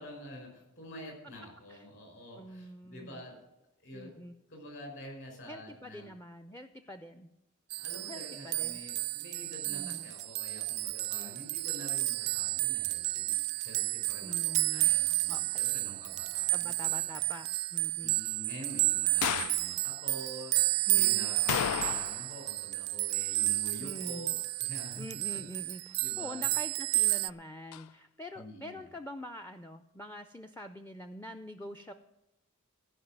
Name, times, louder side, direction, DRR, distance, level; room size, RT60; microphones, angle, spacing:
voice 1, 0.0-3.4 3.8-4.1 4.5-6.1 7.8-17.3 18.0-25.1 25.3-25.4 26.0-26.4 28.3-28.8, left 1 dB, 55° left, 1 dB, 5.0 m, -47 dB
voice 2, 2.4-3.2 3.9-4.3 5.4-7.3 8.1-8.8 9.7-10.1 11.1-11.4 14.2-14.9 15.3-15.6 16.5-18.1 20.9-21.4 23.8-24.3 25.0-31.9, left 1 dB, 10° left, 9 dB, 0.4 m, -45 dB
sound 1, 7.7-27.3, right 21 dB, 80° right, 0.3 m, -31 dB
sound 2, 19.2-19.7 21.5-22.3 22.6-22.7 27.7-27.8, left 10 dB, 90° left, 0.3 m, -32 dB
15.5 x 5.2 x 8.8 m, 0.92 s
head